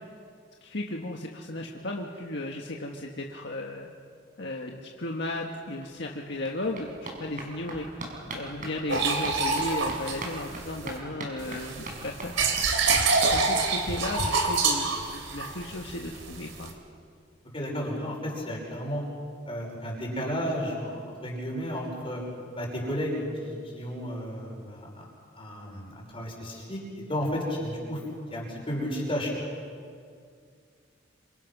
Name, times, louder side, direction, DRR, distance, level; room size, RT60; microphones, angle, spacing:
voice 1, 0.6-3.9 4.4-8.0 8.3-12.6 12.9-16.7, left 1 dB, 65° left, 0 dB, 1.7 m, -35 dB
sound 1, 5.5-5.6 5.8-14.3 14.6-14.7 15.0-15.1 15.3-15.4, right 2 dB, 45° right, 5.8 m, -41 dB
sound 2, 8.9-11.0 11.4-16.7, right 4 dB, 90° right, 3.5 m, -26 dB
voice 2, 17.5-19.0 19.5-22.2 22.5-25.1 25.4-26.8 27.1-28.0 28.3-29.3, equal, 30° left, -2 dB, 5.7 m, -32 dB
28.0 x 26.5 x 6.2 m, 2.3 s
head